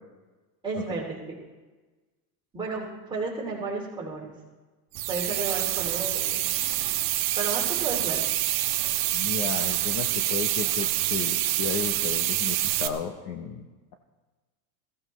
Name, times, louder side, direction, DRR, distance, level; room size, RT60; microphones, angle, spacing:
voice 1, 0.6-1.4 2.5-4.3 5.1-6.5 7.4-8.2, right 3 dB, 10° right, -3 dB, 2.5 m, -32 dB
sound 1, 4.9-12.9, right 14 dB, 30° right, 0.4 m, -26 dB
voice 2, 9.1-13.7, left 7 dB, 40° left, 5 dB, 0.7 m, -33 dB
21.5 x 15.0 x 3.1 m, 1.3 s
cardioid pair, 180°, 48 cm